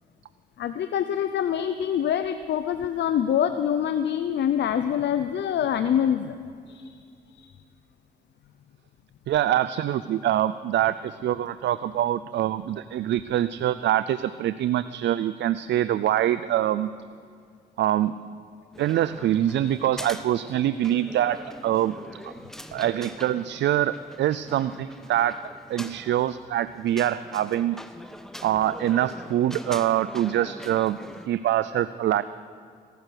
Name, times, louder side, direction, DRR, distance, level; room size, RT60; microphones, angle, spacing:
voice 1, 0.6-6.3 6.7-6.9 7.4-7.5, left 9 dB, 75° left, 10 dB, 0.7 m, -25 dB
voice 2, 9.3-16.9 17.8-18.2 18.8-22.0 22.2-22.3 22.7-25.3 25.7-27.8 28.4-31.0 31.3-32.2, right 12 dB, 80° right, 14 dB, 0.4 m, -24 dB
sound 1, 18.7-31.3, equal, ahead, 1.1 m, -43 dB
18.5 x 12.0 x 6.4 m, 2.3 s
cardioid pair, 65°, 18 cm